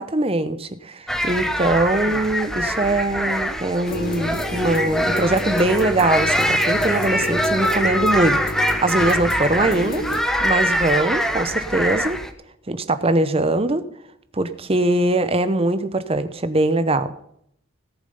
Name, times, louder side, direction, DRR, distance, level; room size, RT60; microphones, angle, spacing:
voice 1, 0.0-8.4 8.8-10.0 10.4-12.2 12.7-13.8 14.3-17.1, right 2 dB, 25° right, 12 dB, 0.8 m, -21 dB
sound 1, 1.1-12.3, equal, ahead, 0.9 m, -23 dB
sound 2, 3.9-10.2, left 1 dB, 40° left, 1.0 m, -30 dB
17.5 x 7.1 x 5.5 m, 0.70 s
head